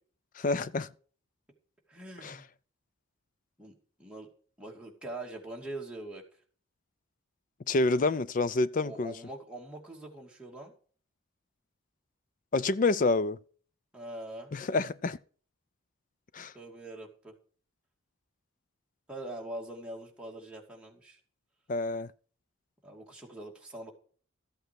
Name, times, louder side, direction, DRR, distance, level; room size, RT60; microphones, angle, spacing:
voice 1, 0.3-0.9 2.2-2.4 7.7-9.1 12.5-13.4 14.5-15.2 16.3-16.5 21.7-22.1, left 3 dB, 40° left, 0.4 m, -28 dB
voice 2, 1.9-2.5 3.6-4.3 4.6-6.2 8.8-10.7 13.9-14.5 16.5-17.4 19.1-21.2 22.8-23.9, right 1 dB, 5° right, 2.5 m, -43 dB
14.0 x 8.1 x 4.7 m
head